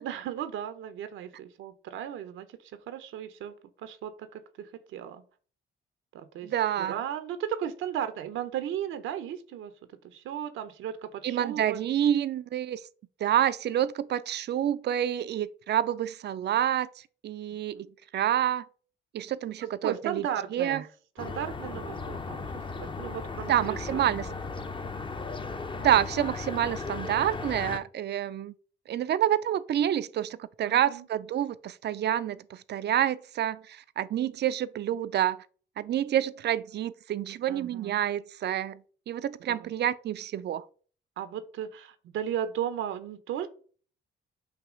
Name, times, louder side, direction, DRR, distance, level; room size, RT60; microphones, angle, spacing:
voice 1, 0.0-5.2 6.1-6.5 6.8-9.7 10.0-11.8 19.8-20.8 21.2-24.0 24.3-24.4 30.6-31.0 37.5-38.0 39.5-39.7 41.2-43.5, right 10 dB, 85° right, 0.9 m, -36 dB
voice 2, 6.4-7.0 11.2-12.8 13.2-16.9 17.2-17.9 18.1-18.6 19.1-20.3 20.5-20.8 23.5-24.3 25.8-28.5 28.9-35.4 35.8-38.8 39.1-40.6, right 11 dB, 60° right, 0.6 m, -28 dB
sound 1, 21.2-27.8, left 4 dB, 25° left, 0.9 m, -36 dB
8.6 x 2.9 x 6.3 m
cardioid pair, 90°, 20 cm